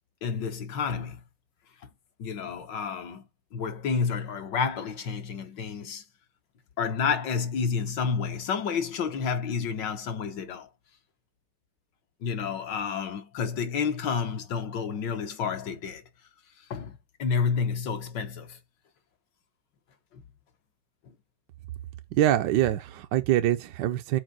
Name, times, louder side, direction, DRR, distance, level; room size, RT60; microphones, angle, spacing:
voice 1, 0.2-1.2 2.2-3.2 3.5-6.0 6.8-10.7 12.2-16.0 16.7-18.6 20.1-20.2, left 6 dB, 65° left, 1.6 m, -30 dB
voice 2, 22.2-24.2, right 13 dB, 70° right, 1.1 m, -24 dB
6.5 x 4.5 x 6.0 m
omnidirectional pair, 2.2 m